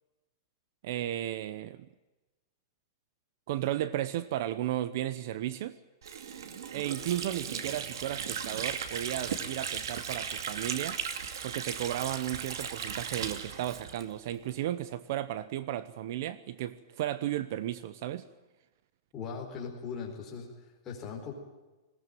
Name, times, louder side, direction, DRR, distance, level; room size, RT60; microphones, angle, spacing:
voice 1, 0.8-1.9 3.5-5.8 6.7-11.0 11.4-18.3, right 12 dB, 45° right, 0.8 m, -34 dB
Water / Sink (filling or washing), 6.0-14.6, right 7 dB, 75° right, 2.5 m, -37 dB
voice 2, 19.1-21.3, left 6 dB, 15° left, 4.4 m, -40 dB
21.0 x 17.5 x 9.1 m
supercardioid pair, 180°, 2 cm